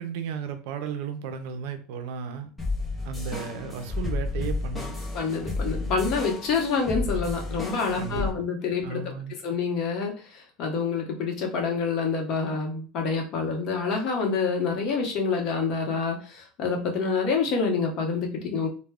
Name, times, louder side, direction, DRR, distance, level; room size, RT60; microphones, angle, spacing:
voice 1, 0.0-2.5 3.0-4.9 8.0-8.3 8.8-9.3, right 6 dB, 70° right, 8 dB, 0.4 m, -34 dB
sound 1, 2.6-8.3, left 3 dB, 10° left, 0.7 m, -31 dB
voice 2, 5.1-18.7, left 5 dB, 45° left, 1 dB, 0.8 m, -27 dB
2.2 x 2.1 x 3.4 m, 0.38 s
supercardioid pair, 145°, 0 cm